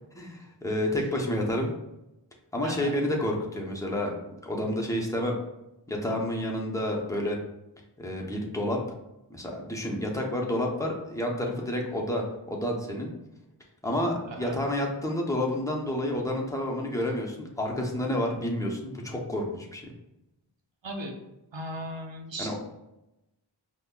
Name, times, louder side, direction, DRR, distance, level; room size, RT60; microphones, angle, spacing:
voice 1, 0.2-1.7 2.5-4.1 4.4-5.4 5.9-7.4 8.0-8.8 9.3-13.1 13.8-19.9 22.4-22.5, left 1 dB, 5° left, -1 dB, 0.7 m, -29 dB
voice 2, 2.6-2.9 14.3-14.6 20.8-21.2 21.5-22.5, right 1 dB, 75° right, 1 dB, 0.7 m, -37 dB
5.2 x 2.2 x 2.3 m, 0.92 s
wide cardioid pair, 45°, 45 cm